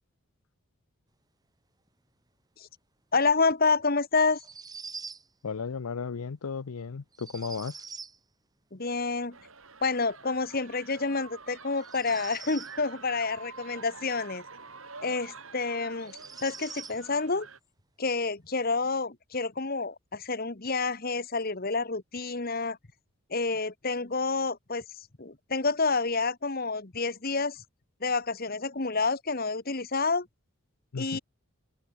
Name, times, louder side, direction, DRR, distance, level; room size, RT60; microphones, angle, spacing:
voice 1, 3.1-4.4 8.7-9.4 9.8-14.4 15.0-17.5 18.0-22.8 23.3-24.8 25.2-27.6 28.0-30.3 31.0-31.2, left 4 dB, 40° left, 1.3 m, -29 dB
sound 1, 4.3-5.3 7.1-8.2 11.7-12.8 15.0-15.1 16.0-17.0, right 5 dB, 15° right, 5.3 m, -44 dB
voice 2, 5.4-7.9 30.9-31.2, left 5 dB, 85° left, 0.6 m, -35 dB
sound 2, 9.3-17.6, right 4 dB, 65° right, 7.0 m, -47 dB
head